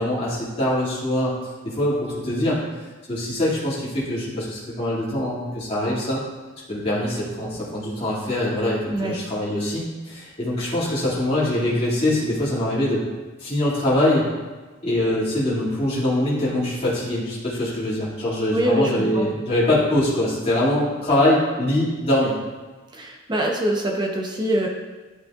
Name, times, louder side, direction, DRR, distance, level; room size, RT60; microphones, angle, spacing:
voice 1, 0.0-1.3 1.6-2.6 3.1-6.2 6.7-13.0 13.4-14.3 14.8-22.4, left 1 dB, 30° left, -8 dB, 2.4 m, -23 dB
voice 2, 18.5-19.2 22.9-24.7, right 1 dB, 20° right, -1 dB, 0.9 m, -24 dB
12.0 x 5.6 x 2.5 m, 1.3 s
head